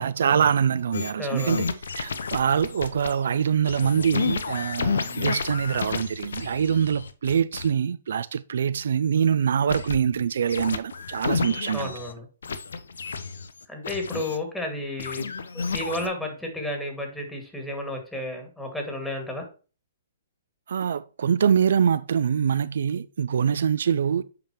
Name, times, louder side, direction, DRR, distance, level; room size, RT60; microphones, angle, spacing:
voice 1, 0.0-1.6 2.0-11.9 20.7-24.2, right 7 dB, 70° right, 0.3 m, -24 dB
sound 1, 0.9-3.1 3.7-7.7 9.7-10.2 10.5-12.1 12.4-14.4 15.0-16.1, left 5 dB, 80° left, 0.7 m, -31 dB
voice 2, 1.2-1.6 11.7-12.3 13.7-15.3 15.5-19.4, left 1 dB, 5° left, 2.1 m, -32 dB
8.0 x 5.1 x 3.0 m
hypercardioid pair, 130°, 0 cm